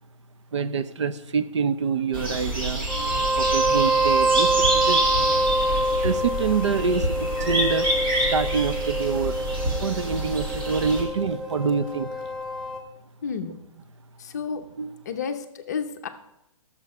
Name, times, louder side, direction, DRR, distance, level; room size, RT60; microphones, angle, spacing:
voice 1, 0.5-2.9 3.4-5.3 5.8-7.9 8.3-9.4 9.8-12.1 14.8-14.9, right 5 dB, 55° right, 12 dB, 0.7 m, -26 dB
sound 1, 2.1-11.0, right 1 dB, 40° right, 2.2 m, -27 dB
sound 2, 2.9-12.8, right 2 dB, 10° right, 0.7 m, -26 dB
voice 2, 13.2-13.6 14.2-14.6 15.0-16.1, left 6 dB, 30° left, 6 dB, 0.7 m, -31 dB
12.0 x 7.2 x 5.5 m, 0.87 s
hypercardioid pair, 175°, 17 cm